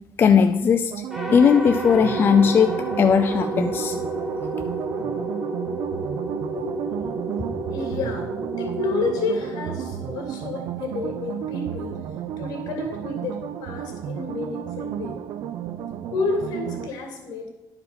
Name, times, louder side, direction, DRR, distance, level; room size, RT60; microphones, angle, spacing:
voice 1, 0.2-0.9 1.3-2.7 3.0-3.9, left 6 dB, 30° left, 7 dB, 0.4 m, -17 dB
sound 1, 0.9-16.9, right 9 dB, 65° right, 0.5 m, -33 dB
sound 2, 1.1-10.4, right 2 dB, 5° right, 1.1 m, -31 dB
voice 2, 6.6-11.9 12.4-15.2 16.1-17.5, left 3 dB, 70° left, 2 dB, 2.5 m, -30 dB
11.0 x 4.9 x 5.1 m, 1.0 s
cardioid pair, 165°, 7 cm